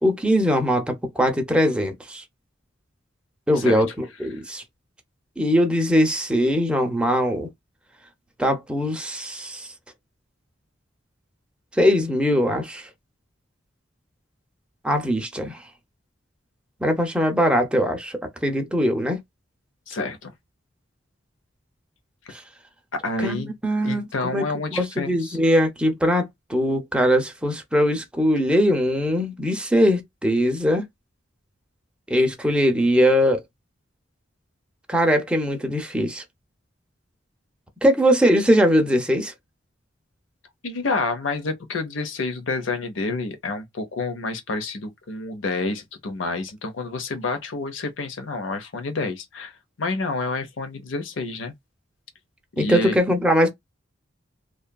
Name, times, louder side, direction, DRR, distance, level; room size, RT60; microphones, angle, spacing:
voice 1, 0.0-2.2 3.5-4.6 5.4-7.5 8.4-9.7 11.8-12.9 14.8-15.6 16.8-19.2 22.3-22.4 23.2-24.4 24.7-30.8 32.1-33.4 34.9-36.2 37.8-39.3 52.6-53.5, equal, 5° right, 0.5 m, -21 dB
voice 2, 19.9-20.3 23.0-23.5 23.8-25.4 40.6-51.5 52.6-53.0, left 3 dB, 75° left, 0.7 m, -29 dB
2.7 x 2.4 x 2.2 m
head